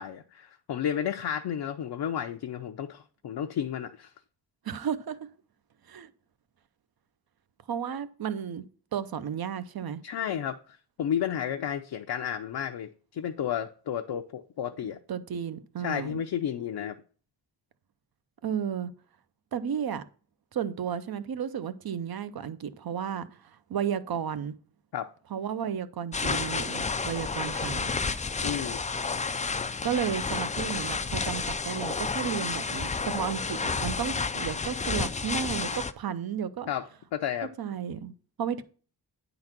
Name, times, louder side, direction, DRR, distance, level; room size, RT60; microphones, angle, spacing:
voice 1, 0.0-4.1 10.0-10.6 11.0-15.0 15.8-16.9 24.9-25.1 28.4-28.8 36.7-37.5, left 9 dB, 65° left, 0.6 m, -32 dB
voice 2, 4.6-5.2 5.9-6.1 7.7-8.6 8.9-10.0 15.1-16.2 18.4-18.9 19.5-20.0 20.5-24.5 25.3-27.9 29.8-36.7 37.6-38.6, right 8 dB, 60° right, 0.7 m, -33 dB
sound 1, 26.1-35.9, left 4 dB, 20° left, 0.3 m, -31 dB
9.7 x 4.0 x 5.9 m
wide cardioid pair, 135°, 42 cm